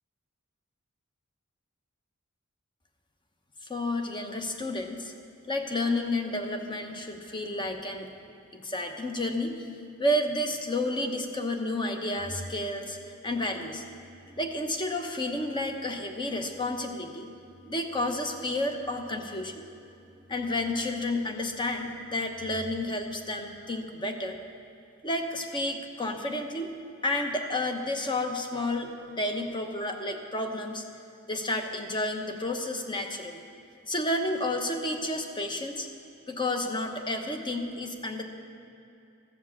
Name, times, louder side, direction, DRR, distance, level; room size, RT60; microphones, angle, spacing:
voice 1, 3.7-5.1 5.5-8.1 8.5-9.6 10.0-13.8 14.4-17.3 17.6-19.7 20.3-24.4 25.0-26.8 27.0-30.8 31.3-33.4 33.9-35.9 36.3-38.2, left 1 dB, 20° left, 4 dB, 1.0 m, -31 dB
Organ, 12.1-23.1, left 1 dB, ahead, 1.2 m, -51 dB
15.0 x 7.3 x 7.3 m, 2.6 s
head